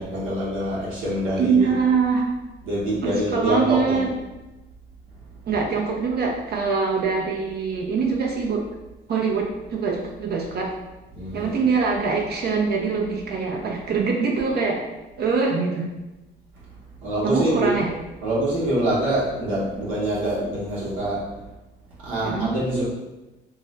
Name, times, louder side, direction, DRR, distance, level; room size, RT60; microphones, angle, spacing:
voice 1, 0.0-1.7 2.6-4.0 11.1-11.5 17.0-17.7 18.2-21.2 22.0-22.8, right 1 dB, 90° right, -7 dB, 0.9 m, -25 dB
voice 2, 1.4-2.3 3.0-4.1 5.5-8.7 9.1-10.7 11.3-14.8 15.2-15.9 17.2-17.9 22.2-22.5, right 5 dB, 55° right, -1 dB, 0.5 m, -23 dB
2.4 x 2.1 x 3.8 m, 1.0 s
cardioid pair, 90°, 20 cm